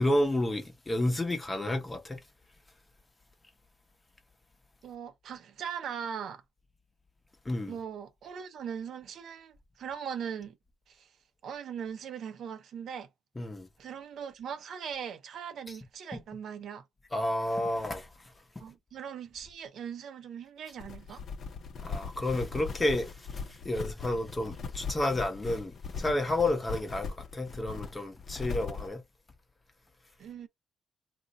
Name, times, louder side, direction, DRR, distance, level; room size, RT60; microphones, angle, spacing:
voice 1, 0.0-2.2 7.4-7.7 13.4-13.7 16.1-16.2 17.1-18.3 21.8-29.0, left 1 dB, 20° left, 0.8 m, -31 dB
voice 2, 4.8-6.4 7.7-10.6 10.9-11.1 11.4-13.1 13.8-16.8 18.6-21.2 30.2-30.5, right 7 dB, 70° right, 0.5 m, -40 dB
sound 1, 20.8-28.9, left 5 dB, 55° left, 0.6 m, -39 dB
2.5 x 2.1 x 3.8 m
cardioid pair, 90°, 0 cm